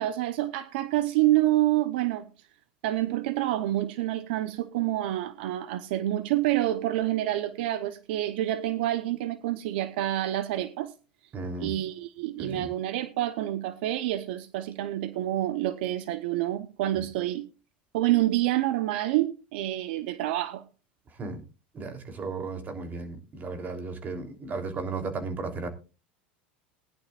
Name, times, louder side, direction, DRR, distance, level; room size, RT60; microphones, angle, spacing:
voice 1, 0.0-2.3 2.8-10.9 11.6-17.5 17.9-20.6, right 14 dB, 75° right, 0.9 m, -27 dB
voice 2, 11.3-11.7 12.4-12.7 17.0-17.1 21.1-21.4 21.7-25.7, right 4 dB, 30° right, 3.3 m, -35 dB
19.5 x 11.0 x 2.4 m
supercardioid pair, 105°, 6 cm